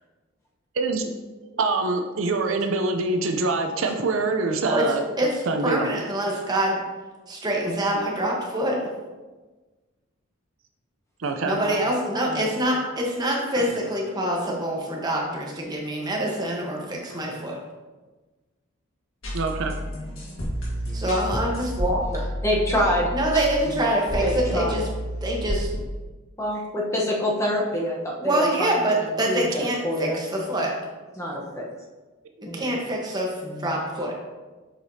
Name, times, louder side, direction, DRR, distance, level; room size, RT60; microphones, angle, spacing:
voice 1, 1.6-5.1 5.5-5.9 11.2-11.6 19.3-19.8, right 3 dB, 65° right, 5 dB, 0.5 m, -24 dB
voice 2, 4.6-6.8 7.3-8.9 11.4-17.6 20.9-22.2 23.1-24.8 25.2-25.7 28.2-30.7 32.4-34.1, right 1 dB, 20° right, -2 dB, 1.0 m, -25 dB
sound 1, 19.2-25.8, equal, 70° left, 1.7 m, -30 dB
voice 3, 22.4-23.5 24.2-24.8 26.4-30.2 31.2-31.6 32.5-32.7, equal, 15° left, -3 dB, 0.9 m, -27 dB
7.6 x 4.9 x 2.7 m, 1.2 s
head